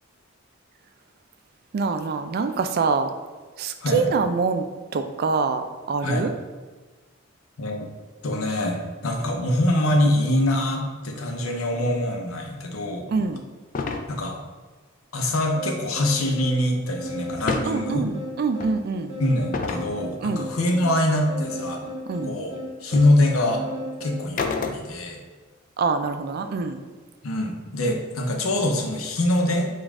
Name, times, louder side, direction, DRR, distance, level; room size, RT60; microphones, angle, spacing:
voice 1, 1.7-3.1 3.6-4.6 4.9-6.3 13.1-13.4 17.7-19.1 20.2-20.5 22.1-22.3 25.8-26.8, right 4 dB, 50° right, 8 dB, 0.3 m, -25 dB
voice 2, 7.6-7.9 8.2-13.1 14.1-14.4 15.1-18.1 19.2-21.8 22.2-22.5 22.8-23.6 24.0-25.2 27.2-29.7, left 1 dB, 85° left, 2 dB, 0.7 m, -24 dB
sound 1, 13.7-14.1 17.3-17.7 18.6-18.7 19.5-19.9 22.2-22.3 22.9-23.1 24.4-25.1, left 4 dB, 40° left, 0.3 m, -28 dB
sound 2, 15.6-24.3, equal, 25° right, 1.0 m, -35 dB
5.2 x 2.4 x 3.5 m, 1.3 s
head